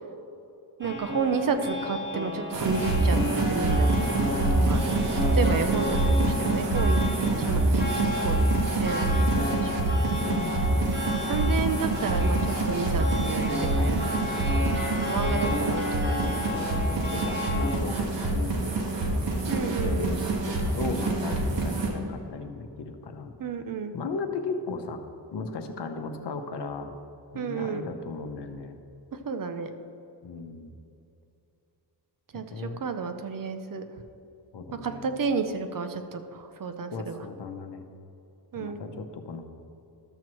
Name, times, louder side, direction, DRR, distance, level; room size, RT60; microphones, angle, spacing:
sound 1, 0.8-17.8, left 1 dB, 25° right, 1.2 m, -33 dB
voice 1, 0.8-3.9 4.7-8.4 8.8-9.9 11.3-16.3 19.5-20.2 23.4-23.9 27.3-27.8 29.1-29.7 32.3-33.8 34.8-37.2 38.5-38.8, right 5 dB, 50° right, 8 dB, 0.6 m, -32 dB
sound 2, 2.5-21.9, right 2 dB, 80° right, 1.5 m, -26 dB
voice 2, 4.3-5.0 10.2-11.0 15.2-15.5 16.5-18.7 19.1-23.3 23.9-25.0 25.3-26.9 27.3-28.8 30.2-30.8 32.3-32.8 34.5-35.1 36.9-37.9 38.5-39.4, left 4 dB, 70° left, 5 dB, 0.8 m, -36 dB
12.5 x 7.4 x 3.1 m, 2.6 s
wide cardioid pair, 125°, 42 cm